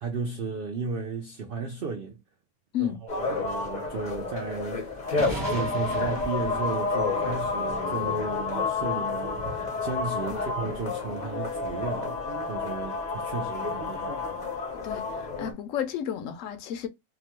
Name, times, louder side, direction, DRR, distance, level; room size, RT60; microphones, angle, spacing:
voice 1, 0.0-2.2 2.8-4.9 5.3-12.2 12.5-14.1, right 5 dB, 85° right, 0.4 m, -34 dB
sound 1, 3.1-15.5, left 4 dB, 40° left, 0.7 m, -30 dB
sound 2, 4.0-12.5, right 1 dB, 20° right, 0.7 m, -42 dB
voice 2, 14.8-16.9, left 10 dB, 65° left, 0.9 m, -32 dB
2.9 x 2.2 x 2.8 m
omnidirectional pair, 1.6 m